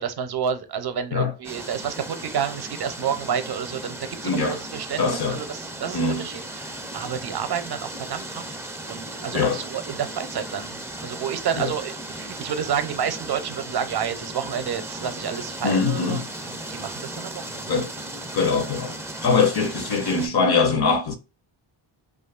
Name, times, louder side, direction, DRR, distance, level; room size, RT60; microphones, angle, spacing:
voice 1, 0.0-8.4 8.9-17.8, right 8 dB, 50° right, 0.6 m, -30 dB
sound 1, 1.4-20.3, right 1 dB, 5° right, 0.4 m, -36 dB
voice 2, 4.2-4.6 5.0-5.4 5.9-6.2 9.3-9.6 11.6-11.7 15.6-16.2 17.7-17.9 18.3-18.9 19.2-21.2, left 4 dB, 50° left, 0.6 m, -22 dB
2.6 x 2.4 x 2.3 m
cardioid pair, 75°, 50 cm